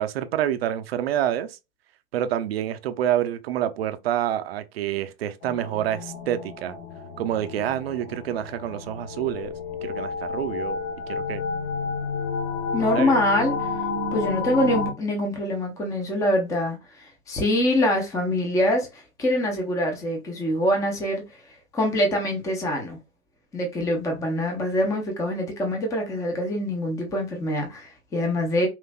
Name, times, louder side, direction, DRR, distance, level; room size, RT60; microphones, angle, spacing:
voice 1, 0.0-1.6 2.1-6.8 7.2-9.5 9.8-10.8 11.1-11.4 12.8-13.1, right 11 dB, 50° right, 0.6 m, -27 dB
sound 1, 5.4-14.9, left 5 dB, 55° left, 1.8 m, -31 dB
voice 2, 12.7-13.7 14.1-21.2 21.7-23.0 23.5-28.7, left 1 dB, 10° left, 0.7 m, -24 dB
5.6 x 2.6 x 2.3 m
hypercardioid pair, 120°, 41 cm